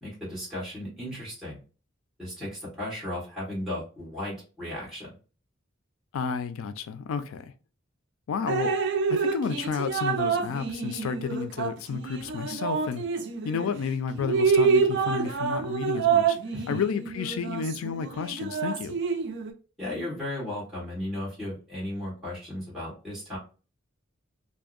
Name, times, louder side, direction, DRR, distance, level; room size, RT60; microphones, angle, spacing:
voice 1, 0.0-1.6 2.2-5.1 16.5-16.7 19.8-23.4, left 1 dB, ahead, 1.3 m, -35 dB
voice 2, 6.1-7.5 8.3-8.7 9.1-13.0 13.4-16.4 16.7-19.0, left 6 dB, 80° left, 0.3 m, -31 dB
Drip, 8.5-13.7 14.1-19.5, right 5 dB, 60° right, 0.4 m, -27 dB
2.6 x 2.0 x 2.4 m
head